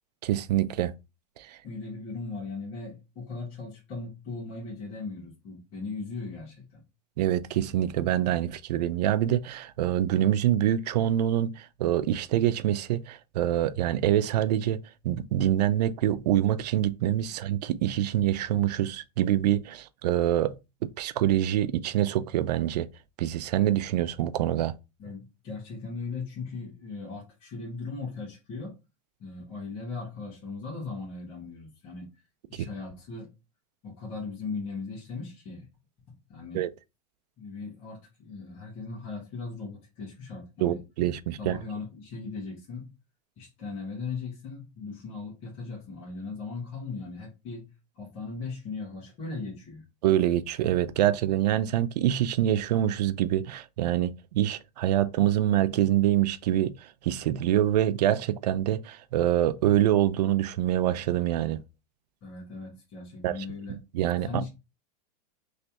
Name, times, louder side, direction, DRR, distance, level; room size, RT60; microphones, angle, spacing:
voice 1, 0.2-0.9 1.4-1.6 7.2-14.8 15.0-20.6 21.0-22.9 23.2-24.7 36.5-36.7 40.6-41.6 50.0-61.6 63.2-63.4 63.7-64.4, right 12 dB, 90° right, 0.4 m, -25 dB
voice 2, 1.6-6.8 25.0-28.7 29.2-32.1 32.5-33.3 33.8-35.7 36.1-36.6 37.4-40.8 41.4-42.9 43.4-49.8 62.2-63.8 64.2-64.5, left 4 dB, 30° left, 1.6 m, -38 dB
3.2 x 3.2 x 2.9 m
supercardioid pair, 165°, 20 cm